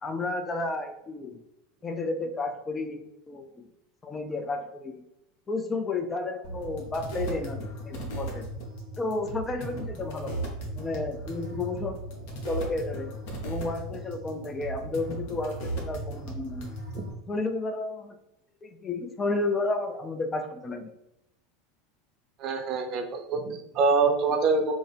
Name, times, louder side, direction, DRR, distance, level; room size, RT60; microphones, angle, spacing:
voice 1, 0.0-1.4 1.8-3.7 4.0-5.0 5.5-8.5 9.0-10.4 10.8-12.0 12.5-13.1 13.4-16.7 17.3-18.2 18.6-20.9, left 3 dB, 20° left, 7 dB, 0.4 m, -32 dB
sound 1, 6.4-17.1, right 1 dB, 55° left, 0.8 m, -36 dB
voice 2, 22.4-24.7, right 4 dB, 45° right, 4 dB, 0.5 m, -25 dB
3.5 x 2.0 x 3.4 m, 0.85 s
figure-of-eight pair, 80°, 0 cm